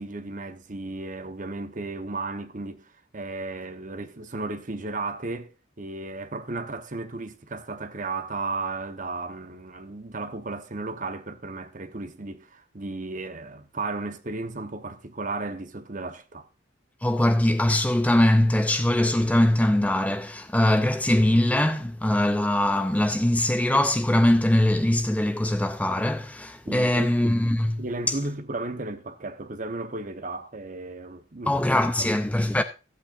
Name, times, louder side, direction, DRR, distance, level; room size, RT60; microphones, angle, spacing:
voice 1, 0.0-16.5 26.7-27.2 27.8-32.1, right 3 dB, 40° right, 1.0 m, -34 dB
voice 2, 17.0-28.2 31.4-32.6, left 1 dB, 5° left, 0.5 m, -22 dB
15.0 x 8.2 x 2.5 m
head